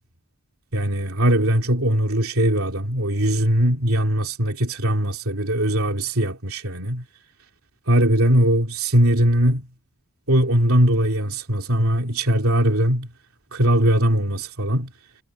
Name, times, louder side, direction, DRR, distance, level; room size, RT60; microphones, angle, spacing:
voice 1, 0.7-7.0 7.9-9.7 10.3-13.1 13.5-14.9, right 1 dB, 75° right, 3.1 m, -20 dB
head